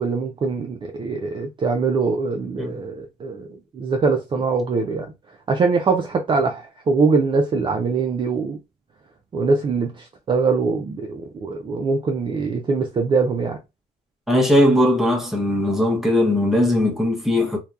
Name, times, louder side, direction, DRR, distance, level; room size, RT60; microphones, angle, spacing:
voice 1, 0.0-3.5 3.7-5.1 5.5-8.6 9.3-13.6, right 4 dB, 30° right, 0.4 m, -22 dB
voice 2, 14.3-17.6, left 1 dB, ahead, 0.8 m, -19 dB
2.7 x 2.2 x 2.3 m
cardioid pair, 110°, 17 cm